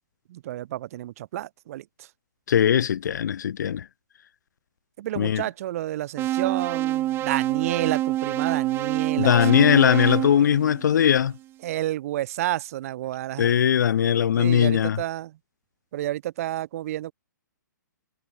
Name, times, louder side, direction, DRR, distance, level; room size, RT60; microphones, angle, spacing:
voice 1, 0.3-2.1 5.0-9.5 11.6-13.5 14.4-15.4 15.9-17.1, right 14 dB, 45° right, 7.2 m, -30 dB
voice 2, 2.5-3.9 5.2-5.4 9.2-11.4 13.4-15.0, left 9 dB, 65° left, 0.5 m, -20 dB
sound 1, 6.2-11.3, right 14 dB, 20° right, 1.5 m, -27 dB
figure-of-eight pair, 130°, 11 cm